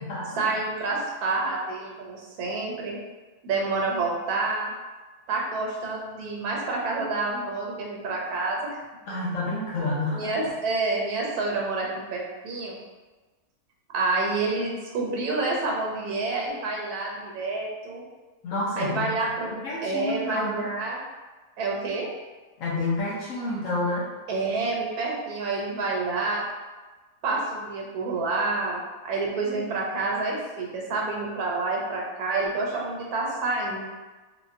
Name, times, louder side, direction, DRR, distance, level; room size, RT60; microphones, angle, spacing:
voice 1, 0.4-3.0 3.4-4.7 5.3-8.8 9.1-9.2 10.1-12.8 13.9-18.0 18.8-19.5 19.8-21.0 21.6-22.1 24.3-26.5 27.2-33.9, right 3 dB, 80° right, -2 dB, 1.1 m, -28 dB
voice 2, 9.1-10.3 18.4-19.1 19.6-20.7 22.6-24.1, left 2 dB, 65° left, -5 dB, 1.0 m, -29 dB
3.6 x 2.2 x 2.5 m, 1.3 s
omnidirectional pair, 1.6 m